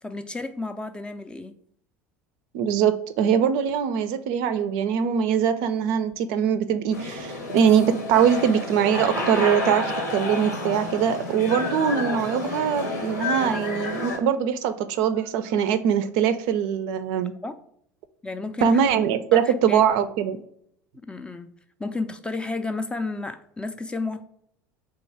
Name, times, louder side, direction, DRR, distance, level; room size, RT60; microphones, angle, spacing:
voice 1, 0.0-1.6 17.4-17.5 18.2-18.8 19.3-19.8 21.1-21.5 21.8-24.2, left 3 dB, 10° left, 9 dB, 0.4 m, -32 dB
voice 2, 2.5-17.3 18.6-20.4, right 8 dB, 50° right, 11 dB, 0.4 m, -22 dB
sound 1, 6.9-14.2, left 2 dB, 75° left, 0.9 m, -30 dB
3.6 x 3.0 x 4.5 m, 0.69 s
figure-of-eight pair, 70°, 9 cm